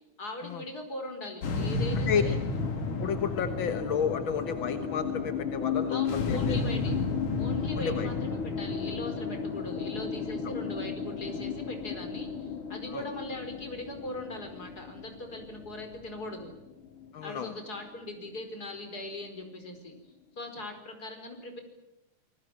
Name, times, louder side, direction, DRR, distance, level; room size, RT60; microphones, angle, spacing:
voice 1, 0.2-2.4 5.9-6.9 7.4-16.5 17.2-19.9 20.4-21.6, left 1 dB, 30° left, 5 dB, 5.0 m, -40 dB
sound 1, 1.4-17.8, left 4 dB, 80° left, 4.4 m, -33 dB
voice 2, 3.0-6.6 7.7-8.1 10.4-10.5 12.9-13.0 17.1-17.6, left 7 dB, 55° left, 8 dB, 1.6 m, -31 dB
27.5 x 20.5 x 8.9 m, 0.89 s
omnidirectional pair, 3.6 m